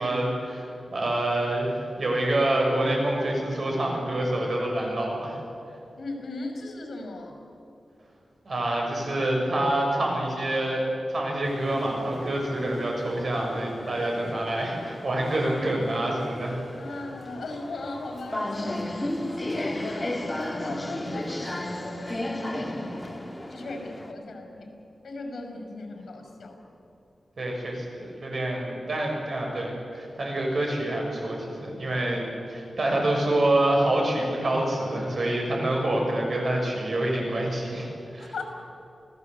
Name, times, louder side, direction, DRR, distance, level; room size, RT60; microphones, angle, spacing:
voice 1, 0.0-5.4 8.4-10.8 11.1-16.6 27.4-37.9 38.1-38.3, right 1 dB, 50° right, 0 dB, 6.7 m, -27 dB
voice 2, 6.0-7.4 16.8-18.8 19.3-22.9 23.5-24.7 25.0-26.6 32.5-33.0 38.2-38.4, left 2 dB, 70° left, 3 dB, 5.9 m, -38 dB
sound 1, 11.4-24.1, left 1 dB, 15° left, 2.1 m, -35 dB
27.5 x 17.5 x 8.3 m, 2.8 s
wide cardioid pair, 130°, 0 cm